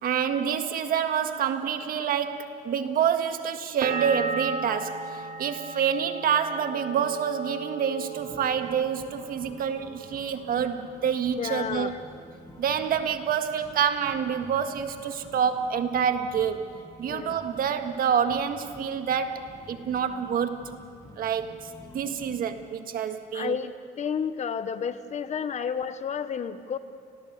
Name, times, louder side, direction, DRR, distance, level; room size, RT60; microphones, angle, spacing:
voice 1, 0.0-11.9 12.6-16.7 17.0-20.9 21.2-23.6, right 8 dB, 60° right, 7 dB, 1.7 m, -27 dB
sound 1, 3.8-9.4 9.7-10.5, right 3 dB, 75° right, 2.5 m, -36 dB
sound 2, 8.1-22.6, left 1 dB, 20° left, 5.5 m, -49 dB
voice 2, 11.4-12.0 17.1-17.4 23.3-23.7 24.0-26.8, left 7 dB, 45° left, 12 dB, 1.2 m, -31 dB
30.0 x 20.5 x 6.8 m, 2.4 s
cardioid pair, 110°, 17 cm